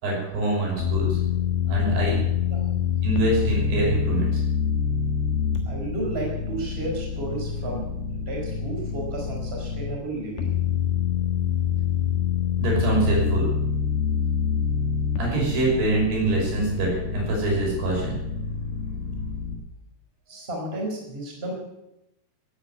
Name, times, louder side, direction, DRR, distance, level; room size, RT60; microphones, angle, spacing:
voice 1, 0.0-1.2 1.7-2.2 3.0-4.4 12.6-13.5 15.2-18.2, right 2 dB, 85° right, -2 dB, 8.0 m, -24 dB
sound 1, 0.8-10.0 10.4-19.6, left 7 dB, 70° left, 3.4 m, -26 dB
voice 2, 5.6-7.9 8.3-10.5 20.3-21.6, right 2 dB, 15° right, -1 dB, 4.7 m, -32 dB
16.5 x 9.9 x 8.3 m, 0.89 s
omnidirectional pair, 4.6 m